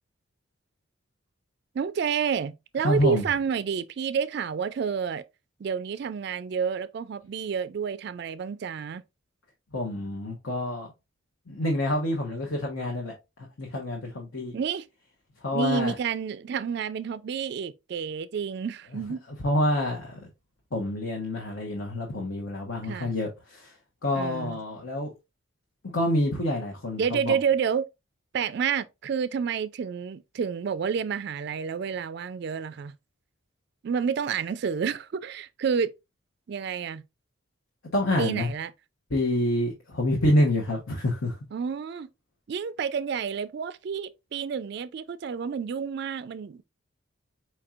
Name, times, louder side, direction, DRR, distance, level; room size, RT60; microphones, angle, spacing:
voice 1, 1.7-5.2 5.6-9.0 14.5-14.9 15.5-19.2 22.8-23.1 24.1-24.6 27.0-27.9 28.3-32.9 33.8-35.9 36.5-37.0 38.2-38.7 41.5-42.1 42.5-46.6, right 7 dB, 55° right, 0.3 m, -29 dB
voice 2, 2.8-3.2 9.7-10.9 11.5-13.1 13.6-14.5 15.4-15.9 19.4-20.2 20.7-23.7 24.0-25.1 25.9-27.4 37.9-38.5 39.1-41.4, left 1 dB, 70° left, 1.0 m, -27 dB
4.5 x 4.3 x 2.4 m
head